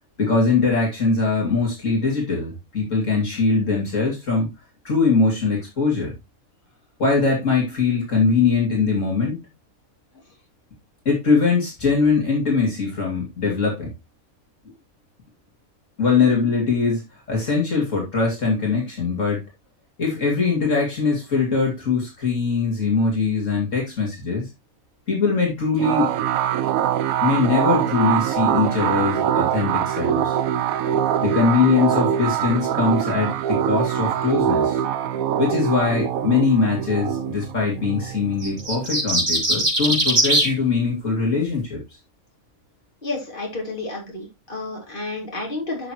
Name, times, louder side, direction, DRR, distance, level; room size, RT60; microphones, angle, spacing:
voice 1, 0.2-4.5 4.8-6.1 7.0-9.4 11.0-13.9 16.0-19.4 20.0-24.5 25.1-26.2 27.2-30.4 31.2-34.8 35.4-41.8, left 4 dB, 60° left, -1 dB, 2.9 m, -21 dB
sound 1, 25.8-39.0, right 10 dB, 75° right, 1.1 m, -23 dB
sound 2, 38.4-40.5, right 1 dB, 45° right, 3.2 m, -20 dB
voice 2, 43.0-45.9, left 2 dB, 35° left, 0 dB, 3.3 m, -31 dB
11.0 x 6.3 x 3.0 m, 0.21 s
omnidirectional pair, 1.5 m